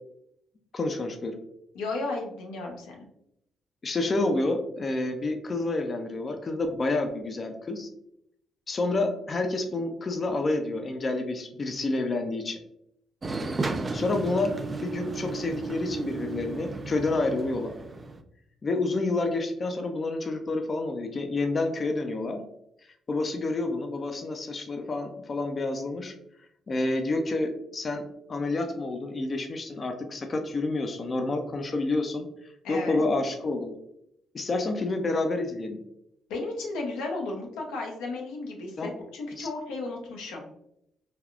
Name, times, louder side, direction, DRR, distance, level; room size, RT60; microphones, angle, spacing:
voice 1, 0.7-1.4 3.8-7.9 8.7-12.6 13.9-17.7 18.6-22.4 23.1-26.1 26.7-28.0 28.3-32.3 32.7-33.8 34.3-35.8 38.8-38.9 39.4-39.5, left 2 dB, 40° left, 4 dB, 0.4 m, -29 dB
voice 2, 1.7-3.0 32.6-33.0 36.3-40.4, left 3 dB, 85° left, 0 dB, 0.6 m, -34 dB
sound 1, 13.2-18.2, right 3 dB, 35° right, 0.3 m, -34 dB
3.4 x 2.3 x 2.3 m, 0.78 s
supercardioid pair, 60°, 0 cm